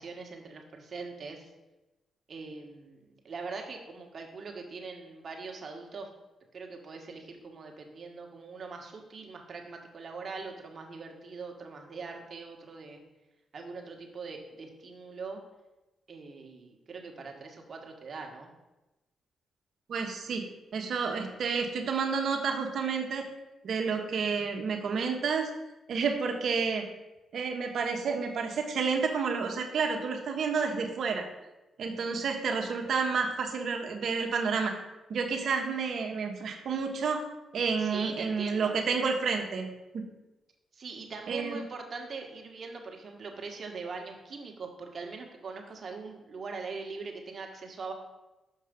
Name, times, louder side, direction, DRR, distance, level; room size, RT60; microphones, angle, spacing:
voice 1, 0.0-1.5 2.3-6.1 6.5-13.0 13.5-15.4 16.1-18.5 37.8-38.8 40.7-47.9, right 4 dB, 50° right, 2 dB, 1.5 m, -42 dB
voice 2, 19.9-20.4 20.7-23.2 23.6-25.5 25.9-26.9 27.3-31.2 31.8-34.7 35.1-37.2 37.5-39.7 39.9-40.1 41.3-41.6, right 5 dB, 65° right, 3 dB, 1.3 m, -30 dB
6.6 x 5.4 x 5.2 m, 1.0 s
cardioid pair, 75°, 0 cm